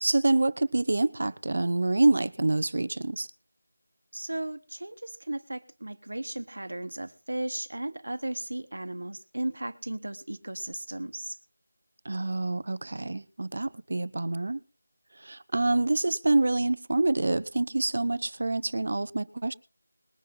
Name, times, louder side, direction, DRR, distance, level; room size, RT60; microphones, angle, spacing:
voice 1, 0.0-3.3 12.0-14.6 15.1-19.5, right 2 dB, 55° right, 15 dB, 0.8 m, -26 dB
voice 2, 4.1-11.4, right 1 dB, 85° right, 9 dB, 1.3 m, -35 dB
21.0 x 9.7 x 3.9 m, 0.33 s
figure-of-eight pair, 175°, 0 cm